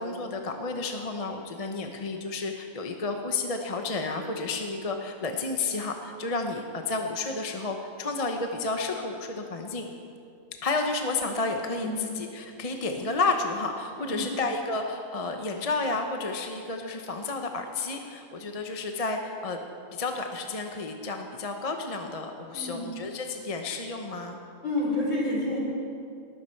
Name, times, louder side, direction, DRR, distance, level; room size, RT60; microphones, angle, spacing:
voice 1, 0.0-9.9 10.6-19.6 19.9-24.4, left 3 dB, 30° left, 4 dB, 0.8 m, -31 dB
voice 2, 22.5-22.9 24.6-25.6, left 1 dB, 55° left, -5 dB, 5.0 m, -29 dB
19.0 x 14.5 x 4.5 m, 2.5 s
omnidirectional pair, 1.5 m